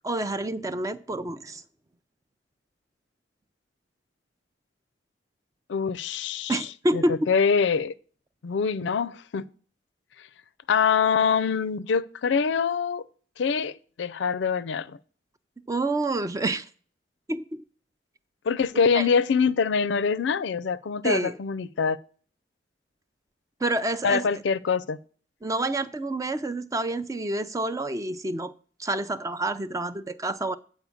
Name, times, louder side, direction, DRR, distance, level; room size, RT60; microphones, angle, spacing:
voice 1, 0.0-1.6 6.5-7.3 15.7-16.6 17.3-17.6 18.9-19.1 21.0-21.3 23.6-24.2 25.4-28.5 28.8-30.6, right 2 dB, 20° right, 0.4 m, -28 dB
voice 2, 5.7-7.9 8.4-9.4 10.7-13.0 13.4-15.0 18.5-22.0 24.0-25.0, left 6 dB, 85° left, 0.4 m, -24 dB
8.2 x 4.4 x 7.1 m
head